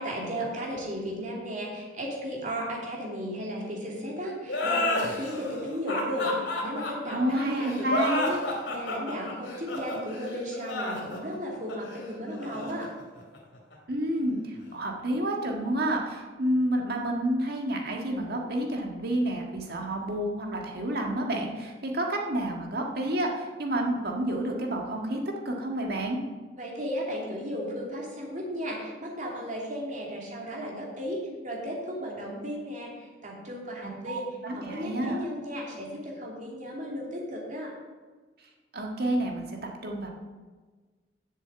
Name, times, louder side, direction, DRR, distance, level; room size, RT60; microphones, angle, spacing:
voice 1, 0.0-12.9 26.5-34.2 34.5-37.7, equal, 45° right, -2 dB, 2.7 m, -35 dB
sound 1, 4.5-13.7, left 2 dB, 85° left, 2.7 m, -31 dB
voice 2, 7.1-8.3 13.9-25.2 25.4-26.2 34.1-35.2 38.7-40.1, right 1 dB, 60° right, 1 dB, 1.7 m, -29 dB
7.5 x 6.9 x 8.0 m, 1.3 s
head